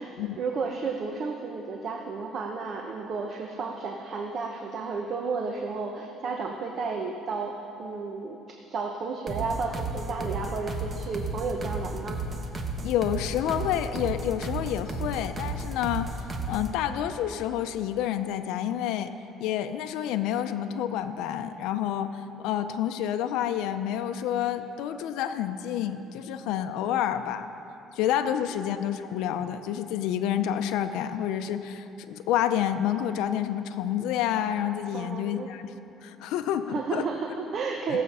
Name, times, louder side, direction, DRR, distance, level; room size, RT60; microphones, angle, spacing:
voice 1, 0.0-7.5 7.8-12.2 34.9-35.5 36.7-38.0, right 4 dB, 45° right, 2 dB, 0.8 m, -32 dB
sound 1, 9.3-16.8, right 2 dB, 25° right, 1.1 m, -34 dB
voice 2, 12.8-16.1 16.5-19.1 19.4-27.5 27.9-35.6 36.0-37.0, left 10 dB, 85° left, 8 dB, 0.5 m, -29 dB
17.5 x 7.5 x 5.5 m, 2.9 s
cardioid pair, 135°, 0 cm